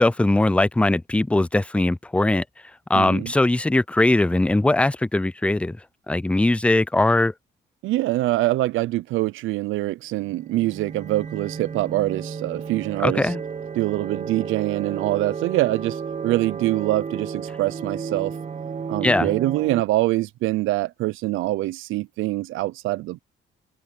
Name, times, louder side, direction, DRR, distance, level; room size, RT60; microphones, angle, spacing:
voice 1, 0.0-2.4 2.9-5.8 6.1-7.3 13.0-13.4 19.0-19.3, left 2 dB, 5° left, 0.4 m, -20 dB
voice 2, 2.9-3.3 7.8-13.3 13.8-18.4 18.9-23.2, right 17 dB, 85° right, 0.5 m, -24 dB
sound 1, 10.2-19.8, right 6 dB, 35° right, 1.1 m, -33 dB
cardioid pair, 90°, 20 cm